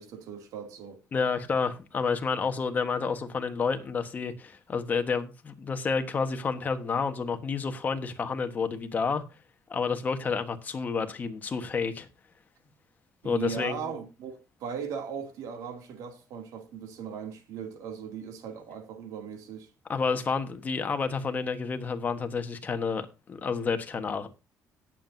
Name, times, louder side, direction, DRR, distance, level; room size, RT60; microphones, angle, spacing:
voice 1, 0.0-1.0 13.2-19.7, right 7 dB, 75° right, 2.6 m, -38 dB
voice 2, 1.1-9.2 9.7-12.1 13.2-13.9 19.9-24.3, left 5 dB, 30° left, 1.3 m, -30 dB
18.5 x 7.5 x 2.7 m
cardioid pair, 155°, 6 cm